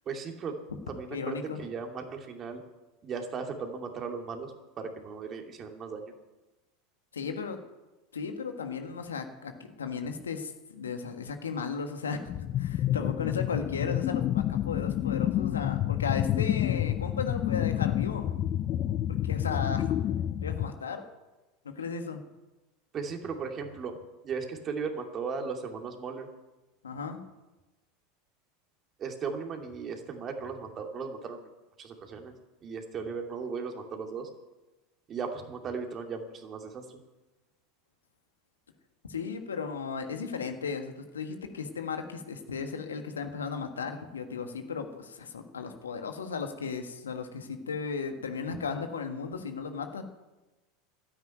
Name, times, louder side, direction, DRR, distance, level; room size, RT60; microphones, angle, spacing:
voice 1, 0.1-0.6 0.9-2.6 3.0-6.1 22.9-24.0 24.2-26.3 29.0-31.4 31.8-32.3 32.6-34.3 35.1-37.0, right 5 dB, 35° right, 3 dB, 2.6 m, -37 dB
voice 2, 1.1-1.6 7.1-7.6 8.1-9.5 9.8-18.3 19.2-19.9 20.4-21.0 21.6-22.2 26.8-27.2 39.1-50.0, left 5 dB, 80° left, 6 dB, 1.5 m, -35 dB
sound 1, 12.3-20.7, left 12 dB, 40° left, 0.5 m, -29 dB
13.0 x 9.8 x 9.0 m, 1.1 s
figure-of-eight pair, 80°, 0 cm